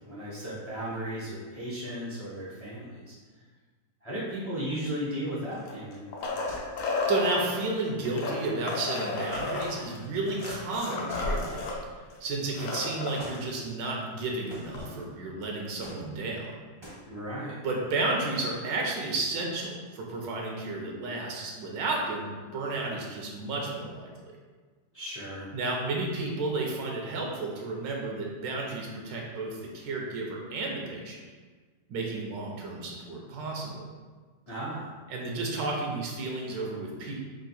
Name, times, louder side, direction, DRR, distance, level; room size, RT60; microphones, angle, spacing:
voice 1, 0.1-3.1 4.0-6.1 17.0-17.6 24.9-25.5 34.5-34.9, equal, 45° left, -9 dB, 0.5 m, -35 dB
sound 1, 5.5-7.4 8.1-11.8 12.1-12.2 12.5-13.2 14.7-14.8, left 3 dB, 65° left, 0.8 m, -32 dB
sound 2, 6.5-7.0 9.3-9.8 11.1-11.9 13.2-13.5 14.5-15.1 15.8-16.4 16.8-17.0, equal, 30° right, 0.5 m, -46 dB
voice 2, 7.1-11.8 12.2-16.5 17.6-24.3 25.5-31.2 31.9-33.8 35.1-37.1, right 2 dB, 85° right, -1 dB, 1.4 m, -32 dB
3.6 x 2.5 x 4.1 m, 1.5 s
omnidirectional pair, 1.9 m